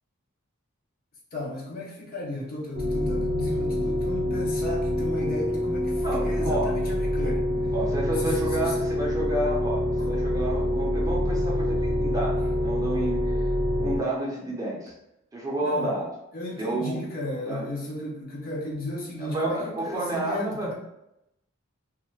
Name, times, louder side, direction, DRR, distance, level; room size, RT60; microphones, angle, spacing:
voice 1, 1.3-7.4 8.2-8.8 10.0-10.2 15.6-16.0 16.3-20.7, left 1 dB, 45° left, -3 dB, 0.6 m, -34 dB
sound 1, 2.7-14.0, left 1 dB, 60° right, 0.6 m, -26 dB
voice 2, 6.0-6.8 7.7-13.5 13.8-14.9 15.3-16.0 16.5-17.0 17.5-17.6 19.2-20.7, right 1 dB, 15° right, -4 dB, 0.6 m, -30 dB
2.5 x 2.3 x 3.1 m, 0.84 s
head